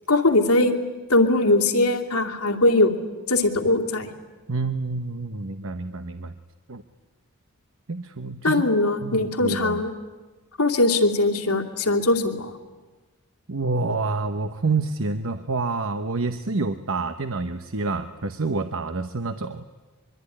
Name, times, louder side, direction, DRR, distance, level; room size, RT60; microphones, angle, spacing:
voice 1, 0.1-0.7 1.1-2.9 3.3-4.1 8.4-9.9 10.6-12.5, left 2 dB, 90° left, 3 dB, 2.6 m, -20 dB
voice 2, 4.5-6.3 6.7-6.8 7.9-8.7 9.0-9.8 13.5-19.6, right 3 dB, 65° right, 9 dB, 1.0 m, -28 dB
24.0 x 24.0 x 9.9 m, 1.3 s
head